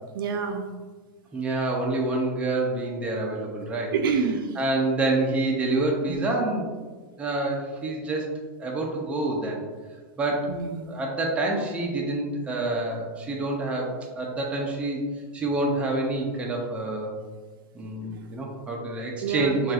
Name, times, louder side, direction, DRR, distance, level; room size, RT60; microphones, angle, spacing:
voice 1, 0.1-0.7 3.9-4.6 6.1-6.2 10.5-10.9 19.2-19.7, right 6 dB, 85° right, 5 dB, 0.4 m, -27 dB
voice 2, 1.3-3.9 4.6-6.7 7.2-8.3 8.6-9.6 10.2-10.6 10.9-15.1 15.3-17.2 17.7-19.7, right 2 dB, 10° right, -2 dB, 0.4 m, -27 dB
4.1 x 2.4 x 2.3 m, 1.4 s
supercardioid pair, 160°, 11 cm